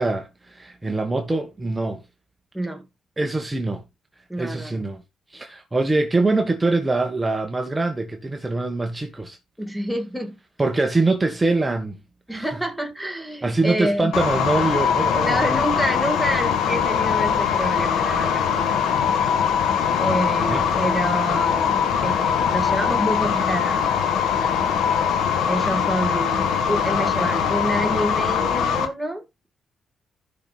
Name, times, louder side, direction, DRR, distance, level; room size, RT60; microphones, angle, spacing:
voice 1, 0.0-2.0 3.2-3.8 4.4-5.0 5.3-9.4 10.6-12.0 12.3-12.5 13.4-15.6 20.5-20.7, right 2 dB, 15° right, 1.4 m, -23 dB
voice 2, 2.5-2.9 4.3-4.8 9.6-10.3 12.3-14.1 15.1-19.0 20.0-23.9 24.3-24.7 25.5-29.5, right 1 dB, ahead, 1.8 m, -28 dB
sound 1, 14.1-28.9, left 7 dB, 90° left, 1.8 m, -22 dB
16.0 x 6.0 x 2.4 m
cardioid pair, 100°, 0 cm